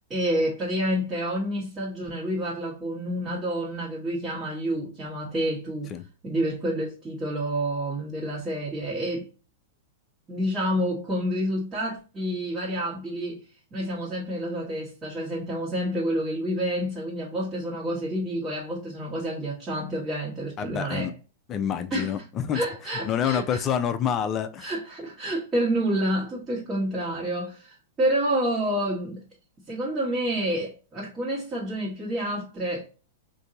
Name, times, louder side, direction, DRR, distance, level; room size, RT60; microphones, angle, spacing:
voice 1, 0.1-5.9 6.2-9.3 10.3-13.4 13.7-21.1 21.9-22.1 22.5-23.6 24.6-29.2 29.7-32.9, right 1 dB, 20° right, 1.4 m, -28 dB
voice 2, 20.6-21.1 21.5-22.6 23.0-24.7, left 8 dB, 30° left, 0.4 m, -27 dB
3.7 x 2.7 x 2.6 m
hypercardioid pair, 135°, 0 cm